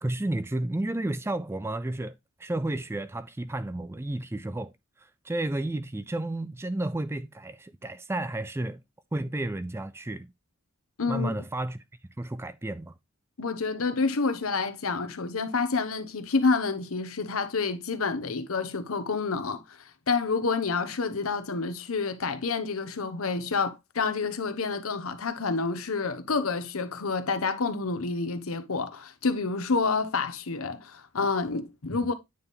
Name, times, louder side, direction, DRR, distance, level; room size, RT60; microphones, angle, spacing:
voice 1, 0.0-2.1 2.4-4.7 5.0-8.8 9.1-10.3 11.1-11.8 12.2-12.9 31.9-32.1, right 1 dB, 10° right, 0.3 m, -32 dB
voice 2, 11.0-11.3 13.4-19.8 20.1-32.1, left 4 dB, 80° left, 0.9 m, -28 dB
9.0 x 4.1 x 3.4 m
head